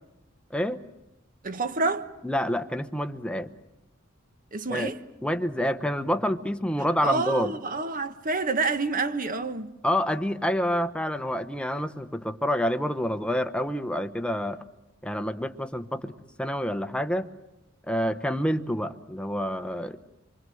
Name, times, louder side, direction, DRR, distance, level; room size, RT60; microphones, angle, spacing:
voice 1, 0.5-0.8 2.2-3.5 4.7-4.9 5.2-7.5 9.8-14.6 15.0-17.3 17.9-20.0, equal, 5° left, 0.9 m, -28 dB
voice 2, 1.4-2.1 4.5-5.0 7.0-9.7, right 3 dB, 40° right, 1.3 m, -28 dB
27.0 x 24.0 x 7.8 m
head